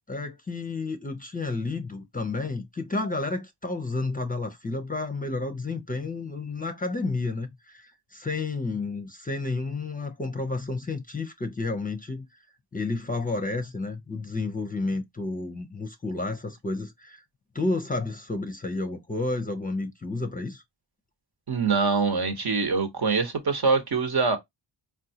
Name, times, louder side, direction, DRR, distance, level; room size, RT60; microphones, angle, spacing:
voice 1, 0.1-12.3 12.7-17.2 17.5-20.6, left 3 dB, 20° left, 0.6 m, -31 dB
voice 2, 21.5-24.4, right 4 dB, 55° right, 1.0 m, -24 dB
3.7 x 2.3 x 2.7 m
cardioid pair, 55°, 46 cm